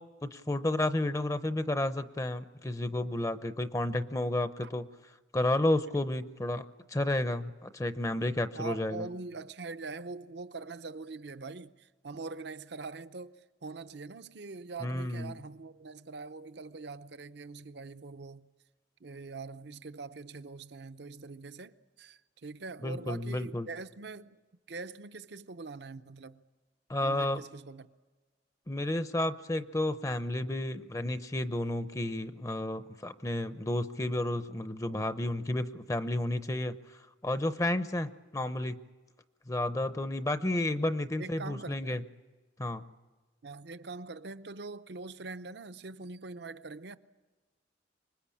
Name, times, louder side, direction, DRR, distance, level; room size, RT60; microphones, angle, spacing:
voice 1, 0.0-4.9 5.3-9.1 14.8-15.4 22.8-23.7 26.9-27.4 28.7-36.7 37.2-38.8 39.5-42.0 42.6-42.8, left 1 dB, 20° left, 0.7 m, -31 dB
voice 2, 8.5-18.5 19.0-24.4 24.7-26.4 27.0-27.9 41.2-42.1 43.4-47.0, right 3 dB, 65° right, 0.7 m, -43 dB
25.0 x 20.5 x 8.6 m
head